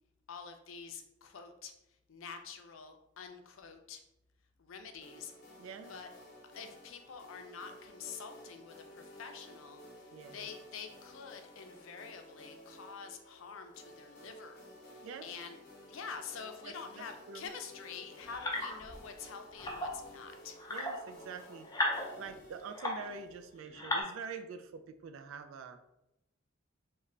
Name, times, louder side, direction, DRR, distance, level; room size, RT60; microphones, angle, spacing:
voice 1, 0.3-1.7 2.1-4.0 4.6-5.3 5.9-6.1 6.5-9.8 10.3-15.6 15.9-20.6, left 6 dB, 85° left, 6 dB, 0.5 m, -47 dB
sound 1, 5.0-23.6, equal, 50° left, 0.8 m, -54 dB
voice 2, 5.6-5.9 10.1-10.5 15.0-15.3 16.6-16.7 17.3-17.5 20.7-21.7 22.1-25.9, right 5 dB, 90° right, 9 dB, 0.3 m, -45 dB
sound 2, 18.3-19.0 19.5-20.0 20.6-23.3 23.6-24.0, left 1 dB, 20° left, 0.6 m, -37 dB
3.2 x 2.2 x 3.7 m, 0.88 s
head